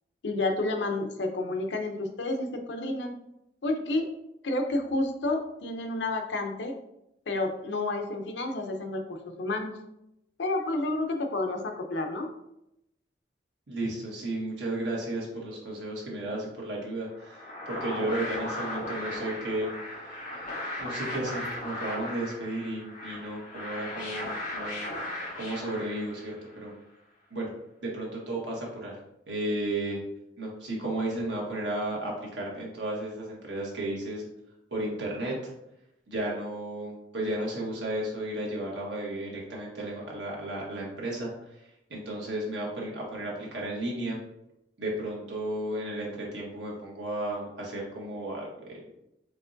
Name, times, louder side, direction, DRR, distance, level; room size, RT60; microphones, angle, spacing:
voice 1, 0.2-3.2 3.6-4.1 4.4-6.7 7.3-9.8 10.4-12.3, left 2 dB, 75° left, 4 dB, 0.6 m, -30 dB
voice 2, 13.7-24.9 25.3-26.7 27.3-27.5 27.8-29.0 29.3-30.0 30.4-34.2 34.7-35.3 36.1-41.3 41.9-44.2 44.8-48.5, right 1 dB, 75° right, -3 dB, 1.4 m, -33 dB
sound 1, 17.1-26.5, left 1 dB, 45° left, 1.5 m, -37 dB
4.7 x 3.7 x 2.6 m, 0.84 s
head